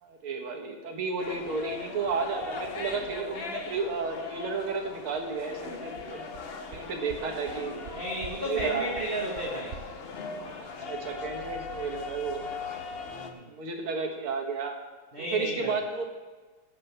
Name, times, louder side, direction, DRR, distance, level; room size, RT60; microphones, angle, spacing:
voice 1, 0.0-6.2 6.7-7.9 8.4-9.0 10.6-12.5 13.5-14.8 15.2-16.0, right 4 dB, 90° right, 2 dB, 2.2 m, -32 dB
sound 1, 1.2-13.3, left 4 dB, 65° left, 0.5 m, -39 dB
sound 2, 5.6-5.7 6.0-6.1 6.3-6.4 6.7-6.8 7.1-7.2 7.5-7.6 7.8-8.3 8.6-8.7 8.9-9.0 9.3-9.4 9.7-9.8, right 6 dB, 60° right, 0.8 m, -42 dB
voice 2, 7.9-9.8 13.1-13.5 15.1-15.7, equal, 30° right, -3 dB, 1.5 m, -33 dB
15.5 x 8.5 x 3.4 m, 1.3 s
omnidirectional pair, 2.3 m